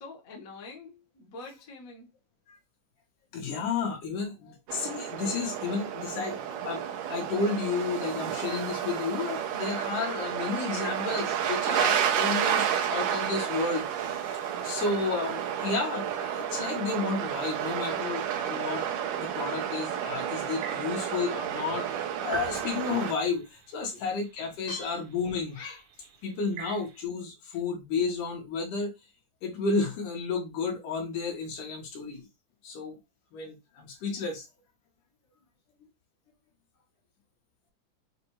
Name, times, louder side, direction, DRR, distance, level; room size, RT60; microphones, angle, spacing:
voice 1, 0.0-2.1 23.9-24.0, left 3 dB, 50° left, 1.0 m, -45 dB
voice 2, 3.3-6.4 6.6-14.3 14.6-18.8 19.2-21.9 22.2-25.8 26.2-28.9 29.4-32.3 32.6-33.0 33.3-34.5, left 4 dB, 75° left, 2.9 m, -32 dB
sound 1, 4.7-23.1, right 9 dB, 85° right, 2.4 m, -31 dB
sound 2, 13.8-27.0, right 6 dB, 65° right, 2.1 m, -51 dB
sound 3, 22.3-24.1, right 3 dB, 45° right, 1.0 m, -39 dB
6.9 x 2.5 x 3.1 m
omnidirectional pair, 3.6 m